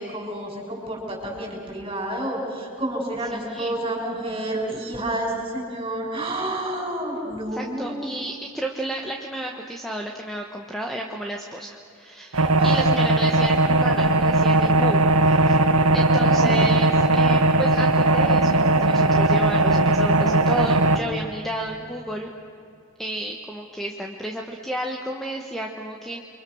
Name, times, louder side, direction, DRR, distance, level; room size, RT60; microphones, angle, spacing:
voice 1, 0.0-8.1 12.6-13.1, right 1 dB, 25° right, 0 dB, 6.4 m, -30 dB
voice 2, 3.3-3.7 7.5-15.6 15.9-22.3 23.0-26.2, right 1 dB, ahead, 1 dB, 1.3 m, -32 dB
sound 1, 12.3-21.0, right 2 dB, 85° right, 1.4 m, -18 dB
30.0 x 24.0 x 6.3 m, 2.6 s
head